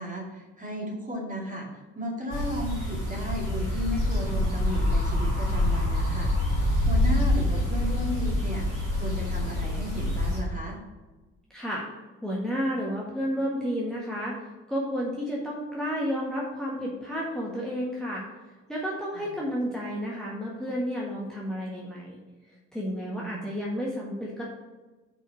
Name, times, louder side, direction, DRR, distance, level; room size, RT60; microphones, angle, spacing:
voice 1, 0.0-1.7 1.9-6.3 6.9-8.7 8.9-10.8 19.1-19.3 23.1-23.4, equal, 20° right, -2 dB, 2.2 m, -34 dB
sound 1, 2.3-10.4, left 1 dB, 90° right, 1.6 m, -26 dB
voice 2, 11.5-11.8 12.2-14.4 14.7-18.2 18.7-22.2 22.7-24.4, equal, ahead, -5 dB, 1.6 m, -31 dB
5.4 x 4.9 x 5.9 m, 1.2 s
figure-of-eight pair, 45°, 37 cm